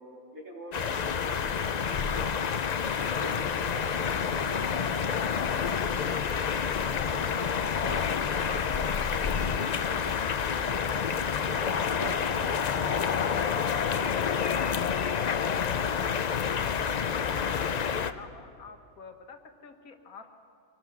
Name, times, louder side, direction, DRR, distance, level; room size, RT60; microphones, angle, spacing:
voice 1, 0.0-2.3 2.8-6.6 7.1-10.0 10.5-13.5 14.0-14.8, right 1 dB, 85° right, -6 dB, 4.1 m, -44 dB
sound 1, 0.7-18.1, left 7 dB, 65° left, 0.4 m, -28 dB
voice 2, 17.3-17.7 18.0-20.4, left 5 dB, 80° left, 6 dB, 1.8 m, -49 dB
24.5 x 18.5 x 6.0 m, 2.4 s
omnidirectional pair, 1.5 m